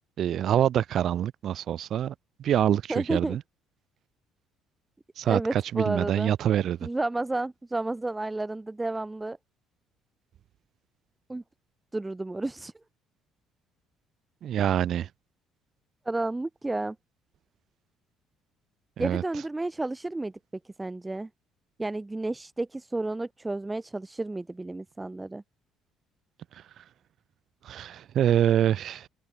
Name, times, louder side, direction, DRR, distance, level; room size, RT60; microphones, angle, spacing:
voice 1, 0.2-2.1 2.4-3.4 5.2-6.9 14.4-15.1 19.0-19.2 26.5-26.6 27.6-29.1, right 10 dB, 55° right, 0.5 m, -25 dB
voice 2, 2.9-3.4 5.2-6.3 6.8-9.4 11.3-11.4 11.9-12.7 16.1-17.0 19.0-20.3 20.8-21.3 21.8-25.4, right 2 dB, 15° right, 0.8 m, -31 dB
open air
hypercardioid pair, 50°, 0 cm